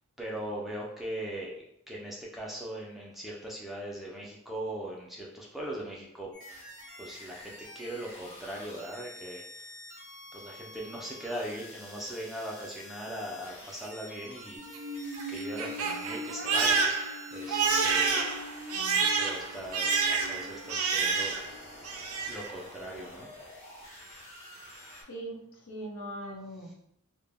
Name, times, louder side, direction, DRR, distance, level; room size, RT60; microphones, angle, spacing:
voice 1, 0.2-1.5 1.9-6.3 7.0-9.4 10.3-14.6 15.3-17.0 17.3-18.3 19.2-21.4 22.3-23.3, right 1 dB, ahead, -3 dB, 0.3 m, -39 dB
sound 1, 6.3-25.0, left 1 dB, 55° left, 1.0 m, -48 dB
Crying sobbing, 14.6-21.6 21.8-22.5, right 4 dB, 90° right, 0.4 m, -29 dB
voice 2, 25.1-26.7, right 1 dB, 75° left, 0 dB, 0.6 m, -41 dB
2.1 x 2.1 x 3.3 m, 0.74 s
head